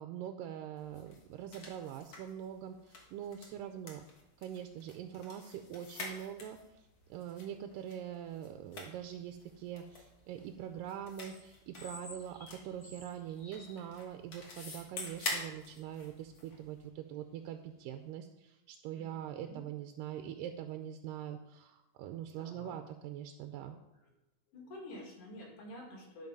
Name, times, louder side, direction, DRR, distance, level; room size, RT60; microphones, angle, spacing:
voice 1, 0.0-4.0 4.4-23.8, right 10 dB, 85° right, 6 dB, 2.2 m, -43 dB
sound 1, 0.8-16.9, left 3 dB, 45° left, 1.8 m, -48 dB
sound 2, 9.4-9.8 10.2-10.8 11.1-13.8 14.1-14.2 15.1-15.6 15.9-16.0 16.4-16.6 17.2-17.4 17.7-18.0, left 2 dB, 20° left, 2.8 m, -54 dB
voice 2, 18.9-19.6 22.3-22.8 23.7-24.1 24.5-26.3, left 1 dB, 70° left, -1 dB, 3.8 m, -50 dB
11.5 x 5.4 x 5.3 m, 0.95 s
omnidirectional pair, 3.9 m